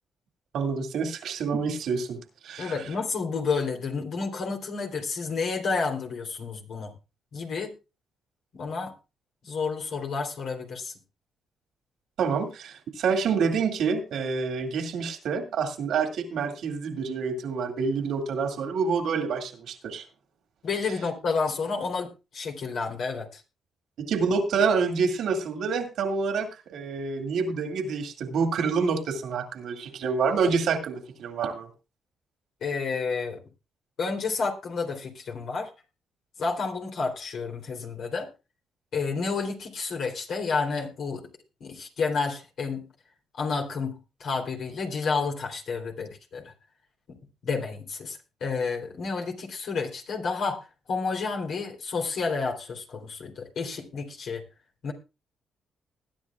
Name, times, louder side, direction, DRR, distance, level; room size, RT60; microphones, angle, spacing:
voice 1, 0.5-2.8 12.2-20.0 24.0-31.7, right 5 dB, 75° right, 5 dB, 2.3 m, -27 dB
voice 2, 2.6-6.9 7.3-7.7 8.5-8.9 9.4-10.9 20.6-23.4 32.6-33.4 34.0-35.7 36.4-38.3 38.9-41.2 41.6-42.9 43.4-46.5 47.1-47.2 47.4-54.4 54.8-54.9, left 4 dB, 70° left, 1 dB, 3.4 m, -30 dB
20.5 x 10.0 x 2.4 m, 0.28 s
supercardioid pair, 60°, 0 cm